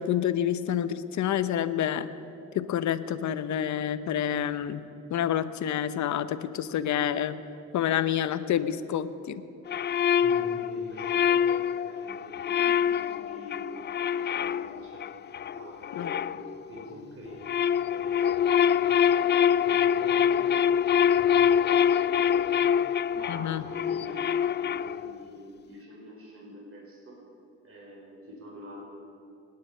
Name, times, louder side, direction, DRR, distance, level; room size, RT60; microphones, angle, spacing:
voice 1, 0.0-2.1 2.5-4.8 5.1-7.4 7.7-9.4 16.0-16.1 23.3-23.6, left 10 dB, 70° left, 12 dB, 0.8 m, -28 dB
sound 1, 9.7-16.9 17.3-25.2, left 8 dB, 35° left, 0.4 m, -25 dB
voice 2, 10.2-15.1 15.5-17.5 17.8-20.7 21.0-22.7 23.1-27.2 27.6-28.9, equal, 50° right, -2 dB, 4.3 m, -45 dB
26.0 x 9.8 x 5.6 m, 2.7 s
cardioid pair, 90°, 30 cm